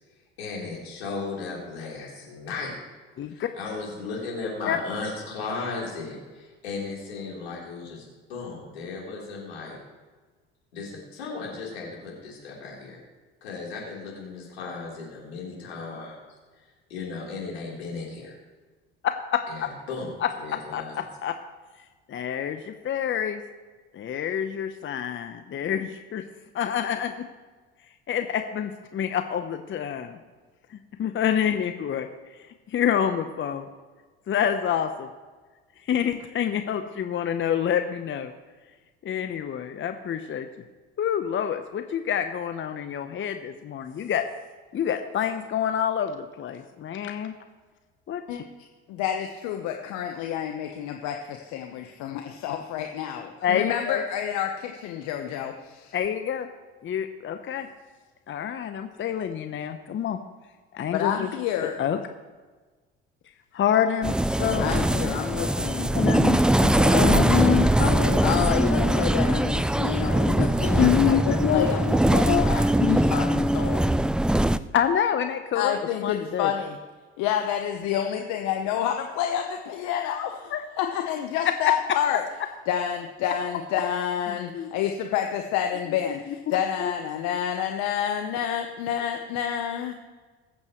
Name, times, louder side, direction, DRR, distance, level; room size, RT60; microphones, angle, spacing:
voice 1, 0.4-2.7 3.3-9.8 10.7-13.0 13.4-16.2 16.9-18.4 19.5-20.1 20.4-21.0, left 4 dB, 85° left, -3 dB, 3.8 m, -36 dB
voice 2, 3.2-3.5 4.7-4.8 19.3-19.7 20.2-20.3 20.7-21.3 22.1-23.4 23.9-26.2 26.5-27.2 28.1-30.2 30.7-32.4 32.7-33.7 34.3-35.1 35.8-38.3 39.0-40.5 41.0-44.2 44.7-47.3 48.1-48.4 53.4-54.0 55.9-56.5 56.8-57.7 58.3-60.2 60.7-61.3 61.6-62.0 63.5-65.2 65.9-69.1 70.3-71.7 72.1-72.5 72.8-73.0 74.7-76.5 80.5-80.6 81.4-81.5 84.5-84.7 85.9-86.0 86.5-86.9, left 9 dB, 40° left, 8 dB, 0.9 m, -27 dB
voice 3, 48.9-56.0 60.9-61.8 64.6-65.9 68.2-73.8 75.5-76.8 77.2-82.2 82.7-89.9, left 9 dB, 65° left, 4 dB, 1.1 m, -29 dB
sound 1, 64.0-74.6, right 1 dB, 5° right, 0.3 m, -22 dB
22.0 x 8.6 x 3.2 m, 1.4 s
hypercardioid pair, 65°, 31 cm